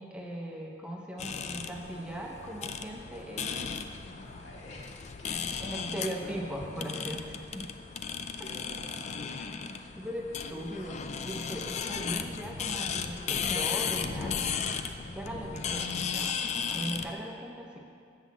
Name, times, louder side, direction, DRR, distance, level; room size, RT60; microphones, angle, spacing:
voice 1, 0.0-3.7 5.6-7.2 7.5-7.7 10.0-17.8, equal, 5° right, -1 dB, 0.6 m, -39 dB
sound 1, 1.2-17.1, left 6 dB, 35° left, 0.3 m, -35 dB
voice 2, 4.0-5.9 6.3-7.0 8.1-9.4, left 1 dB, 70° left, -4 dB, 1.9 m, -46 dB
7.2 x 5.7 x 7.2 m, 2.3 s
head